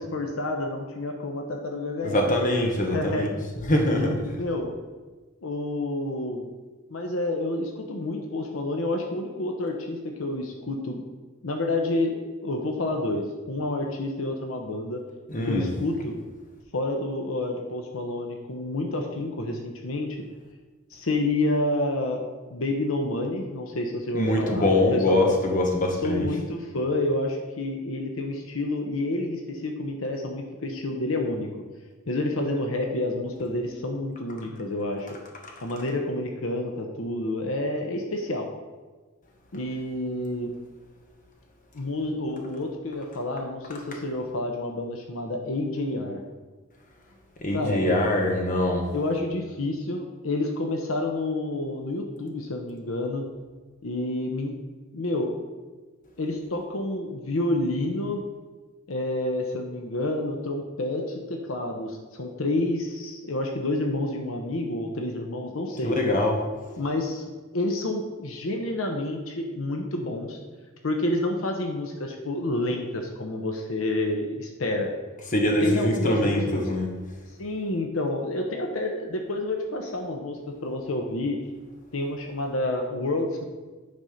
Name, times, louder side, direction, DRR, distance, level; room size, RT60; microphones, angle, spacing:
voice 1, 0.0-2.3 2.9-3.3 3.9-4.7 5.4-6.5 6.9-11.0 11.4-15.0 15.5-16.1 16.7-20.2 20.9-25.2 26.0-31.5 32.1-35.1 35.6-38.5 39.5-40.5 41.7-46.2 47.5-47.8 48.9-53.2 53.8-54.5 54.9-55.3 56.2-58.2 58.9-66.0 66.8-70.4 70.8-74.9 75.6-76.7 77.4-81.4 81.9-83.5, left 2 dB, 75° left, 3 dB, 0.9 m, -29 dB
voice 2, 2.0-3.3 3.7-4.2 15.3-15.7 24.1-26.3 47.4-48.9 65.8-66.4 75.3-76.9, left 1 dB, 40° left, 1 dB, 1.2 m, -23 dB
9.5 x 4.2 x 5.1 m, 1.3 s
head